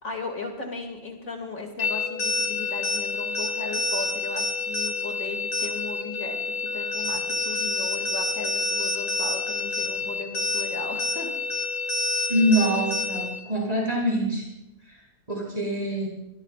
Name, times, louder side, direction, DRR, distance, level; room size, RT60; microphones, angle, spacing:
voice 1, 0.0-11.6, left 3 dB, 60° left, 2 dB, 2.9 m, -37 dB
sound 1, 1.8-13.4, left 2 dB, 85° left, 2.8 m, -28 dB
voice 2, 12.3-14.5 14.9-15.0 15.3-16.1, equal, 25° right, -3 dB, 8.1 m, -24 dB
26.0 x 22.0 x 2.5 m, 0.86 s
omnidirectional pair, 1.6 m